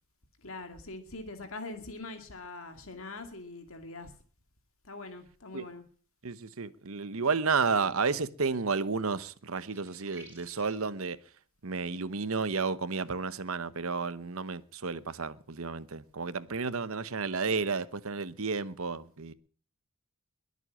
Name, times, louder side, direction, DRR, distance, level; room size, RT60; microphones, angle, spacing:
voice 1, 0.4-4.1 4.8-5.8, left 2 dB, 65° left, 2.3 m, -43 dB
voice 2, 6.2-11.2 11.6-19.3, right 4 dB, 65° right, 1.0 m, -32 dB
sound 1, 9.5-10.9, right 3 dB, 10° right, 5.6 m, -54 dB
22.5 x 8.1 x 6.3 m
head